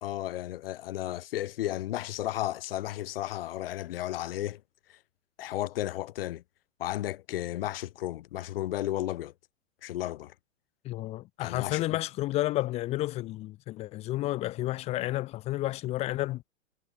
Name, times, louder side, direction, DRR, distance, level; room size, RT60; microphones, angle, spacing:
voice 1, 0.0-4.6 4.9-5.0 5.4-6.4 6.8-9.3 9.8-10.3 11.4-11.8, left 14 dB, 45° left, 2.7 m, -33 dB
voice 2, 10.8-16.4, left 16 dB, 15° left, 0.7 m, -31 dB
figure-of-eight pair, 110°, 39 cm